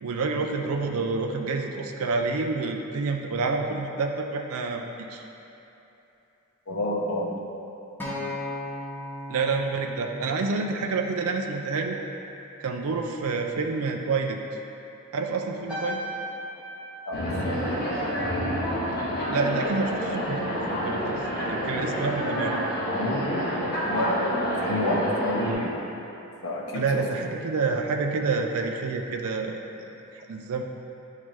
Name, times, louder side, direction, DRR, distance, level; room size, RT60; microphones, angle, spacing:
voice 1, 0.0-5.2 9.3-12.0 12.6-14.4 15.1-16.0 19.3-22.6 26.7-29.6 30.1-30.6, right 4 dB, 65° right, 3 dB, 0.4 m, -28 dB
voice 2, 6.7-7.3 17.1-17.2 22.9-25.7 26.4-27.0, left 1 dB, 65° left, -3 dB, 0.8 m, -29 dB
Acoustic guitar, 8.0-12.3 13.1-13.2, left 2 dB, 10° left, 0.9 m, -38 dB
sound 1, 15.7-20.3 20.6-21.0, equal, 5° right, 1.4 m, -39 dB
sound 2, 17.1-25.5, equal, 50° left, 1.4 m, -28 dB
9.8 x 3.8 x 3.1 m, 2.9 s
head